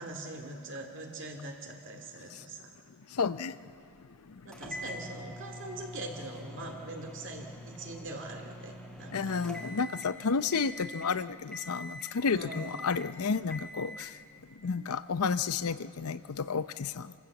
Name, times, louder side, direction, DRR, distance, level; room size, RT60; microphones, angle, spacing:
voice 1, 0.0-2.7 4.4-9.4 12.3-12.8, right 2 dB, 60° right, 2 dB, 2.4 m, -42 dB
voice 2, 3.1-3.7 4.1-4.6 9.1-14.2 14.5-17.1, left 5 dB, 85° left, 14 dB, 0.6 m, -32 dB
sound 1, 4.5-10.2 10.5-11.1 11.5-12.2 12.5-13.1 13.5-14.1, left 1 dB, 5° left, 2.1 m, -44 dB
27.5 x 15.5 x 7.3 m, 2.4 s
head